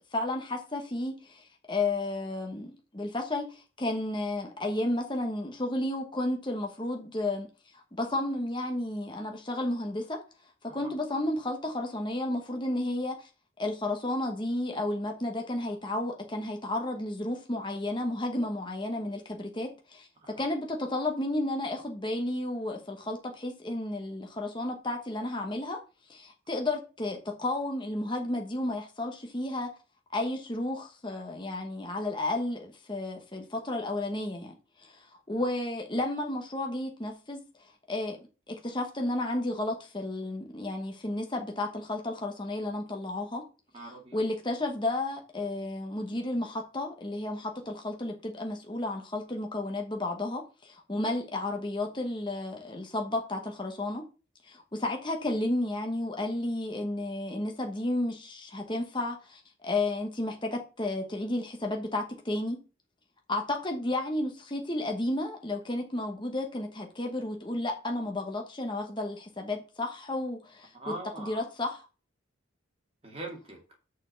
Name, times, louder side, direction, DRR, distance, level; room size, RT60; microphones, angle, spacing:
voice 1, 0.1-7.5 7.7-10.2 10.6-13.3 13.6-20.1 20.4-25.8 26.1-29.7 30.1-37.4 37.9-38.2 38.5-43.4 44.1-54.0 54.4-62.6 63.3-70.7 71.2-71.7, left 2 dB, 20° left, 1.1 m, -32 dB
voice 2, 43.7-44.2 70.7-71.4 73.0-73.6, right 2 dB, 30° right, 2.1 m, -42 dB
6.4 x 4.5 x 6.4 m
head